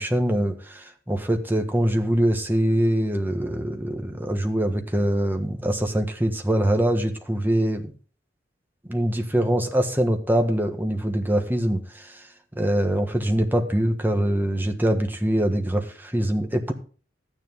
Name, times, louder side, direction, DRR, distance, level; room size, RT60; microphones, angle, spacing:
voice 1, 0.0-7.9 8.9-12.2 12.5-16.7, right 1 dB, 10° right, 5 dB, 1.5 m, -23 dB
13.0 x 9.8 x 3.8 m, 0.38 s
head